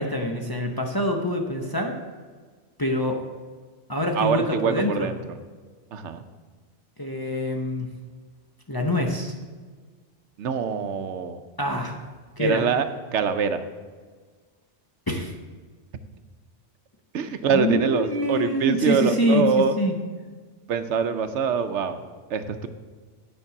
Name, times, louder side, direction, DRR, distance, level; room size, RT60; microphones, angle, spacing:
voice 1, 0.0-1.9 2.8-3.2 3.9-5.1 7.0-7.9 8.7-9.3 11.6-12.0 12.4-12.6 15.1-15.3 17.5-19.9, left 1 dB, 25° left, 1 dB, 0.6 m, -25 dB
voice 2, 4.1-5.4 5.9-6.2 10.4-11.4 12.4-12.9 13.1-13.6 17.1-19.7 20.7-22.0 22.3-22.7, right 6 dB, 75° right, 10 dB, 0.9 m, -24 dB
9.7 x 5.3 x 5.9 m, 1.5 s
omnidirectional pair, 1.2 m